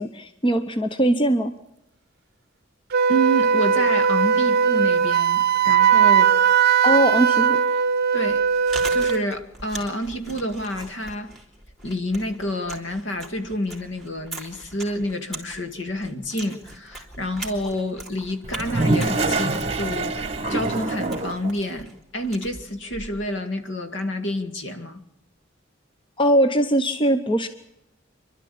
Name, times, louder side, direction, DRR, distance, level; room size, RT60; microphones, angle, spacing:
voice 1, 0.0-1.5 6.8-7.6 26.2-27.5, right 1 dB, 25° left, 0.9 m, -20 dB
Wind instrument woodwind instrument, 2.9-9.3, right 7 dB, 50° right, 0.7 m, -19 dB
voice 2, 3.1-6.4 8.1-8.4 8.9-11.4 11.8-20.2 20.5-25.0, equal, 65° left, 2.2 m, -28 dB
Chewing mastication, 8.3-23.4, right 2 dB, ahead, 3.4 m, -40 dB
Toilet flush, 18.4-21.5, right 2 dB, 30° right, 1.5 m, -25 dB
27.0 x 12.0 x 8.5 m
head